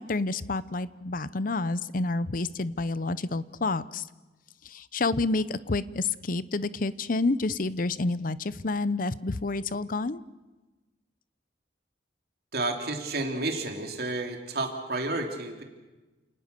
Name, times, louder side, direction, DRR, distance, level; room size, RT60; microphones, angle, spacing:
voice 1, 0.0-4.1 4.6-10.2, left 3 dB, 50° left, 16 dB, 0.7 m, -29 dB
voice 2, 12.5-15.6, right 2 dB, 60° right, 3 dB, 2.9 m, -31 dB
29.0 x 19.0 x 6.8 m, 1.2 s
head